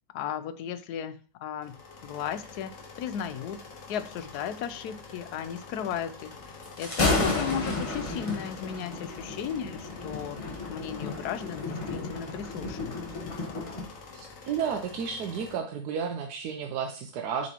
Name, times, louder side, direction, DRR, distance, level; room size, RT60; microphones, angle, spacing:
voice 1, 0.1-1.8 2.0-2.7 3.0-3.6 3.9-10.4 10.7-13.3, left 8 dB, 90° left, 12 dB, 1.2 m, -35 dB
sound 1, 1.6-15.5, left 4 dB, 60° left, 1.5 m, -47 dB
Thunder, 6.6-13.9, left 2 dB, 25° left, 1.1 m, -32 dB
voice 2, 14.1-17.5, right 7 dB, 90° right, 4 dB, 1.3 m, -32 dB
7.4 x 5.4 x 2.9 m, 0.39 s
omnidirectional pair, 1.6 m